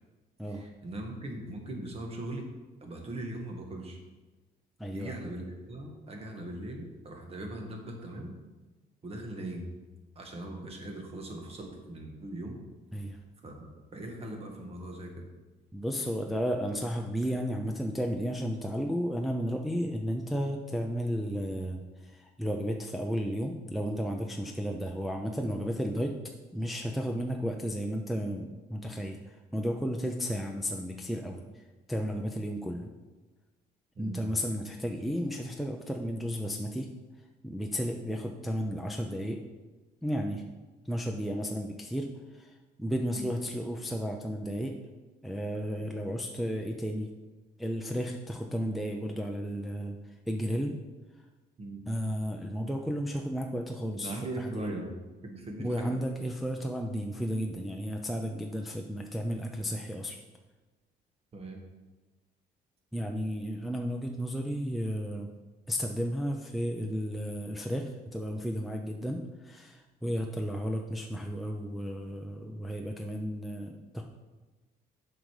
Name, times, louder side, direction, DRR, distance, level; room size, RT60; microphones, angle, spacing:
voice 1, 0.5-2.5 2.8-4.0 4.9-8.3 9.0-9.7 10.2-12.6 13.4-15.3 34.0-34.2 43.1-43.3 51.6-51.9 54.0-54.9 55.2-56.0 61.3-61.6, right 1 dB, 35° right, 2 dB, 1.7 m, -40 dB
voice 2, 4.8-5.2 12.9-13.2 15.7-26.1 26.5-32.9 34.0-36.9 37.4-39.4 40.0-40.4 40.8-44.7 45.2-47.1 47.6-50.7 51.9-54.8 55.6-60.2 62.9-65.3 65.7-74.1, equal, ahead, 1 dB, 0.6 m, -33 dB
7.5 x 5.3 x 4.9 m, 1.2 s
cardioid pair, 110°, 17 cm